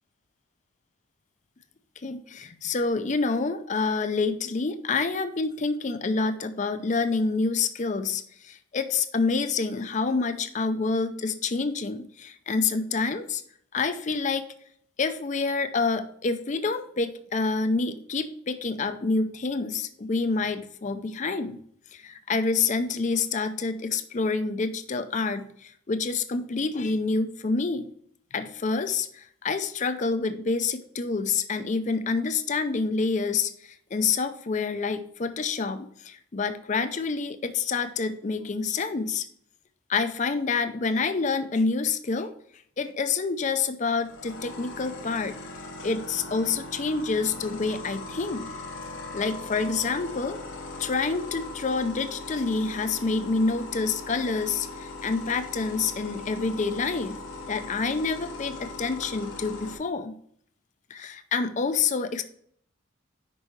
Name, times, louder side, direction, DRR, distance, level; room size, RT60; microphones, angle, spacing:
voice 1, 2.0-13.4 13.7-14.5 15.0-21.6 21.9-27.9 28.3-39.3 39.9-42.3 42.8-45.4 45.8-48.5 49.1-50.4 50.8-57.2 57.5-60.1 60.9-62.2, left 4 dB, 35° left, 11 dB, 0.5 m, -27 dB
sound 1, 44.0-59.7, left 3 dB, 70° left, 1.1 m, -39 dB
5.4 x 5.3 x 4.6 m, 0.65 s
head